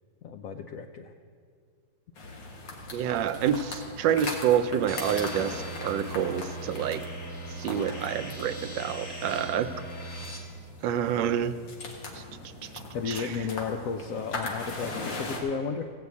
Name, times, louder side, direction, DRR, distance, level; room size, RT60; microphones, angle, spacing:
voice 1, 0.2-1.1 12.9-15.9, left 5 dB, 70° left, 6 dB, 0.8 m, -33 dB
sound 1, 2.2-15.4, left 2 dB, 90° left, 2.3 m, -40 dB
voice 2, 2.9-7.0 7.6-9.7 10.8-11.5 12.1-12.2 13.1-13.3, right 9 dB, 85° right, 11 dB, 1.3 m, -28 dB
sound 2, 4.9-10.4, right 1 dB, 45° left, 1.9 m, -40 dB
16.0 x 5.8 x 8.3 m, 2.2 s
omnidirectional pair, 2.0 m